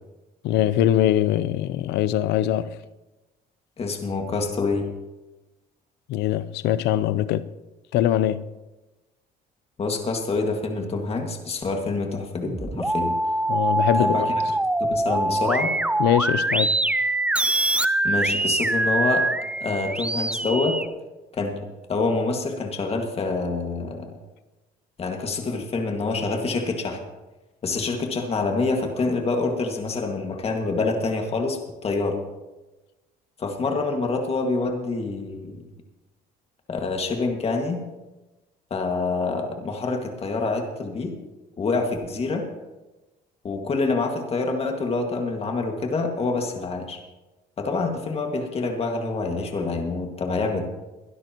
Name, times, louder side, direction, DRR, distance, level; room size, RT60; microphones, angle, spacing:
voice 1, 0.4-2.7 6.1-7.4 7.9-8.4 13.5-14.3 16.0-16.8, left 12 dB, 85° left, 0.6 m, -22 dB
voice 2, 3.8-4.9 9.8-13.2 13.9-14.3 14.9-15.7 18.0-19.3 19.6-20.8 21.3-21.6 21.9-24.1 25.0-27.0 27.6-32.2 33.4-35.6 36.7-37.8 38.7-41.1 41.6-42.5 43.4-47.0 47.6-50.6, left 3 dB, 35° left, 2.0 m, -26 dB
sound 1, 12.4-20.9, right 2 dB, 5° right, 0.5 m, -24 dB
22.0 x 12.0 x 3.0 m
cardioid pair, 110°, 17 cm